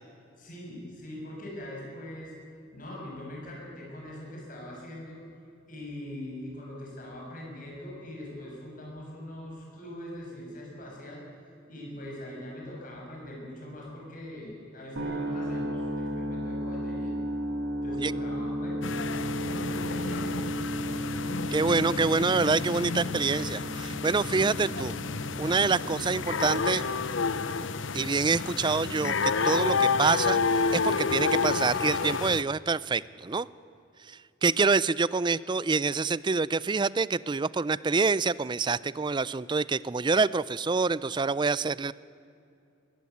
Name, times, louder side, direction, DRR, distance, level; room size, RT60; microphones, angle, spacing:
voice 1, 0.4-2.3 2.7-5.2 5.7-11.2 11.7-17.2 17.8-18.9 19.3-20.7, left 1 dB, 45° left, -2 dB, 7.2 m, -42 dB
sound 1, 15.0-30.9, equal, 80° right, 2.2 m, -35 dB
sound 2, 18.8-32.4, left 4 dB, 80° left, 0.8 m, -30 dB
voice 2, 21.5-24.9 25.4-26.9 27.9-33.5 34.0-41.9, right 4 dB, 25° right, 19 dB, 0.4 m, -26 dB
21.5 x 15.5 x 9.5 m, 2.6 s
head